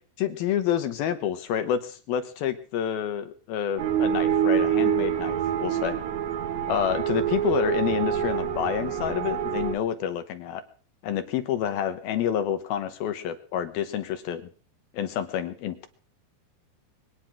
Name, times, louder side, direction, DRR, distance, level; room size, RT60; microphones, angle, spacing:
voice 1, 0.2-6.0 6.7-10.6 11.0-14.4 14.9-15.9, left 9 dB, 75° left, 9 dB, 2.6 m, -28 dB
sound 1, 3.8-9.7, right 9 dB, 60° right, 2.1 m, -26 dB
22.5 x 9.9 x 6.0 m, 0.43 s
omnidirectional pair, 4.8 m